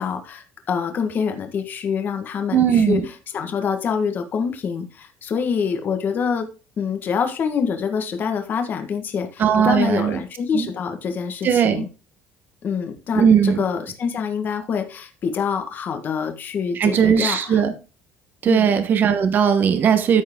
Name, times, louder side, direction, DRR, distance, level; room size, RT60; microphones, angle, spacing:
voice 1, 0.0-6.5 6.8-11.9 12.6-17.6 18.5-18.8, left 6 dB, 40° left, 1.5 m, -26 dB
voice 2, 2.5-3.1 9.4-10.2 10.5-10.7 11.4-11.9 13.2-13.6 16.8-17.7 18.4-20.2, right 7 dB, 40° right, 1.1 m, -18 dB
13.5 x 4.7 x 3.7 m
cardioid pair, 135°, 5 cm